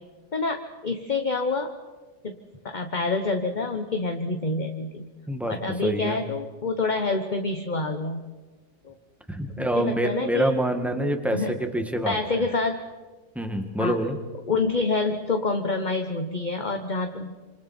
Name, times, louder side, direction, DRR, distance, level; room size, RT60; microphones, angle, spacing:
voice 1, 0.3-1.7 2.2-2.4 2.6-5.1 5.5-8.2 8.8-8.9 9.5-10.6 11.3-11.5 12.0-12.8 13.8-14.0 14.5-17.3, left 3 dB, 30° left, 5 dB, 1.2 m, -27 dB
voice 2, 5.3-6.2 9.3-12.2 13.4-14.2, right 1 dB, ahead, 5 dB, 1.9 m, -26 dB
28.0 x 27.5 x 4.5 m, 1.3 s
omnidirectional pair, 1.8 m